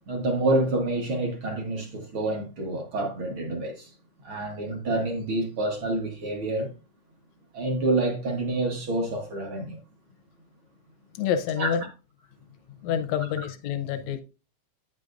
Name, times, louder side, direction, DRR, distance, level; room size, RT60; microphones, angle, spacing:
voice 1, 0.1-3.9 4.2-6.7 7.5-9.8 11.6-11.7, right 2 dB, 55° right, 1.4 m, -28 dB
voice 2, 11.1-11.8 12.8-14.2, left 8 dB, 75° left, 1.7 m, -27 dB
8.9 x 6.5 x 2.5 m
omnidirectional pair, 3.7 m